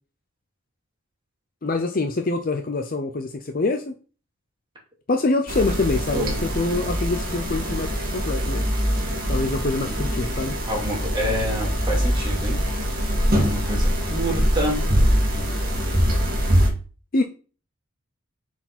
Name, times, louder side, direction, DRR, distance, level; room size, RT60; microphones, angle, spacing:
voice 1, 1.6-3.9 5.1-8.6 9.3-10.5 17.1-17.2, left 2 dB, 40° left, 6 dB, 0.6 m, -25 dB
sound 1, 5.5-16.7, equal, 45° right, 2.3 m, -23 dB
voice 2, 10.7-12.6 13.4-14.8, equal, 20° right, -2 dB, 2.5 m, -28 dB
7.3 x 4.9 x 4.1 m, 0.37 s
head